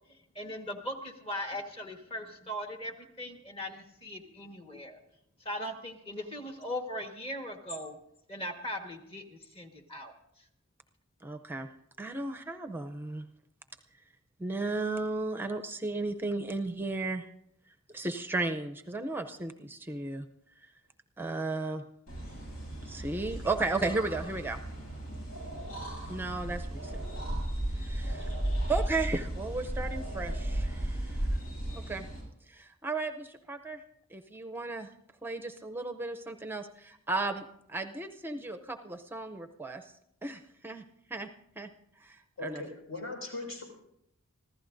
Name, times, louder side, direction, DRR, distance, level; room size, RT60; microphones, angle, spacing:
voice 1, 0.1-5.0 5.4-8.0 8.3-10.1, equal, 25° left, 4 dB, 1.4 m, -39 dB
voice 2, 11.2-11.7 12.0-13.3 14.4-17.3 17.9-20.3 21.2-21.8 22.9-24.6 26.1-27.0 27.8-28.4 28.7-31.2 31.7-32.1 32.5-33.8 34.1-34.9 35.2-37.4 37.7-39.8 40.2-40.8 41.1-41.3 41.6-41.7 42.0-42.6, right 3 dB, 10° right, 7 dB, 0.5 m, -34 dB
sound 1, 22.1-32.2, right 1 dB, 90° left, 7.5 m, -35 dB
voice 3, 42.4-43.6, left 3 dB, 75° left, 2 dB, 5.3 m, -39 dB
25.5 x 15.0 x 2.6 m, 0.76 s
head